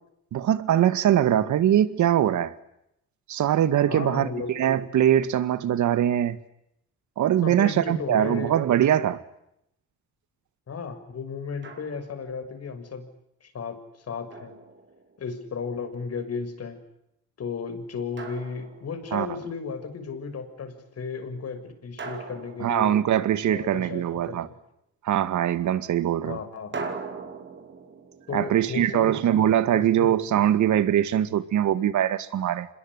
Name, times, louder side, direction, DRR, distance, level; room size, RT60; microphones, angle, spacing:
voice 1, 0.3-2.5 3.3-6.4 7.2-9.2 19.1-19.3 22.6-24.5 25.0-26.4 28.3-32.7, right 11 dB, 70° right, 2.1 m, -22 dB
voice 2, 3.9-4.6 7.4-8.5 10.7-13.1 13.4-13.8 14.1-14.6 15.2-16.8 17.4-22.9 23.4-24.4 26.2-26.8 28.3-29.1 29.7-30.1, left 5 dB, 55° left, 6.7 m, -34 dB
Drum, 11.6-12.3 14.3-15.4 18.2-19.3 22.0-23.6 26.7-29.7, right 4 dB, 40° right, 5.1 m, -40 dB
27.0 x 21.5 x 9.8 m
cardioid pair, 90°, 30 cm